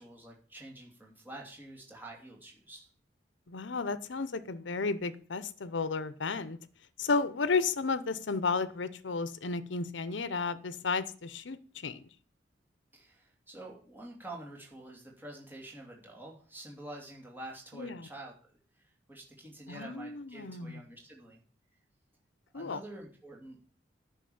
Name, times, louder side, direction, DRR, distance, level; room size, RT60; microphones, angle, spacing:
voice 1, 0.0-2.9 12.9-21.4 22.5-23.7, right 1 dB, 10° right, 2.7 m, -48 dB
voice 2, 3.5-6.6 7.0-12.0 17.7-18.1 19.7-20.8 22.5-22.8, left 4 dB, 80° left, 0.8 m, -33 dB
10.0 x 6.1 x 7.9 m
head